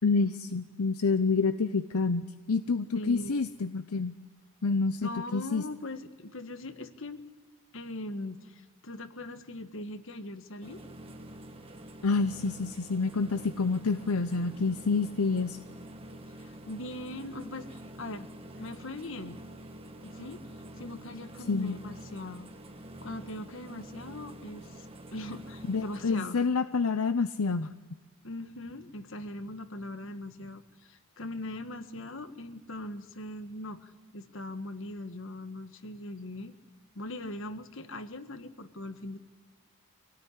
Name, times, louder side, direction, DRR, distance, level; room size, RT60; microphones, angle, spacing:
voice 1, 0.0-4.1 4.6-5.6 12.0-15.6 21.5-21.8 25.7-27.7, left 4 dB, 80° left, 12 dB, 0.7 m, -28 dB
voice 2, 2.9-3.3 5.0-7.2 7.7-10.8 16.4-18.3 18.6-19.4 20.0-20.5 20.8-22.5 23.0-24.9 25.1-26.4 28.2-36.5 36.9-39.2, left 1 dB, 60° left, 10 dB, 1.5 m, -40 dB
sound 1, 10.6-26.2, right 1 dB, 25° right, 1.7 m, -47 dB
25.0 x 17.5 x 10.0 m, 1.3 s
head